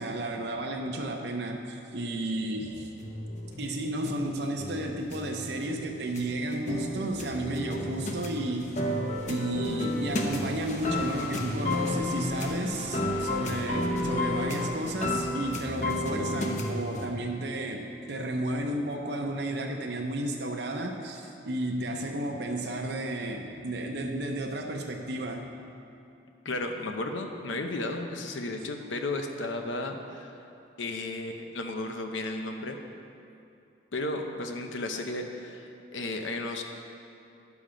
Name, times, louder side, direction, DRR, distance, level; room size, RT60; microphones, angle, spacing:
voice 1, 0.0-2.9 3.6-8.8 9.3-25.5, right 1 dB, 60° right, 2 dB, 0.7 m, -32 dB
sound 1, 2.6-17.1, left 1 dB, 40° left, 0.8 m, -32 dB
sound 2, 8.8-17.3, equal, 55° left, 2.5 m, -46 dB
voice 2, 26.4-30.4 30.8-32.8 33.9-36.6, left 2 dB, 90° left, 4 dB, 0.8 m, -34 dB
10.5 x 7.1 x 5.1 m, 2.6 s
head